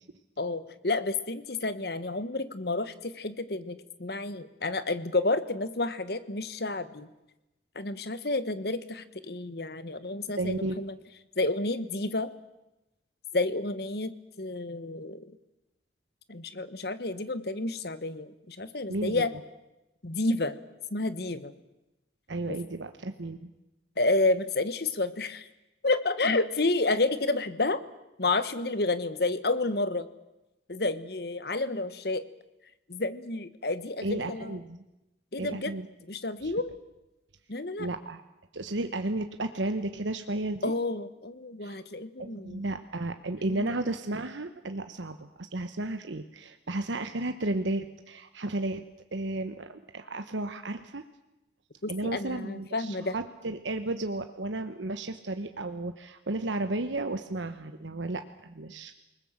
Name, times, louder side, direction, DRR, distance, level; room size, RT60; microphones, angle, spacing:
voice 1, 0.4-7.1 7.7-10.9 11.4-12.3 13.3-15.4 16.3-19.3 20.0-20.6 20.9-21.5 22.5-22.6 24.0-25.5 25.8-27.8 28.2-30.1 30.7-32.2 32.9-34.6 35.3-35.7 36.1-36.7 37.5-37.9 40.6-42.6 43.5-43.9 51.8-53.1, left 2 dB, 60° left, 13 dB, 1.2 m, -30 dB
voice 2, 10.4-10.8 18.9-19.2 22.3-23.5 34.0-34.8 35.4-35.9 36.4-36.5 37.8-38.2 38.5-40.7 41.6-41.8 42.2-48.8 49.1-51.0 51.9-59.0, right 2 dB, 85° right, 8 dB, 1.1 m, -33 dB
28.5 x 20.0 x 7.4 m, 0.96 s
head